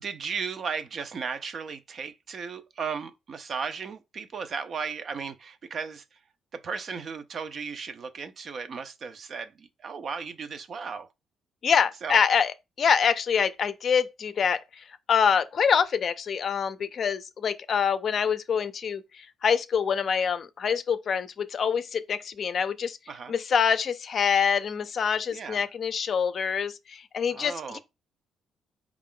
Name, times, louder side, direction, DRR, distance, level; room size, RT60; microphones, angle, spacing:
voice 1, 0.0-6.0 6.5-11.1 12.0-12.2 23.1-23.3 25.3-25.7 27.3-27.8, right 5 dB, 55° right, 0.5 m, -35 dB
voice 2, 11.6-14.6 15.1-19.0 19.4-23.0 23.3-27.8, left 7 dB, 55° left, 0.4 m, -25 dB
4.0 x 2.4 x 3.7 m
cardioid pair, 90°, 0 cm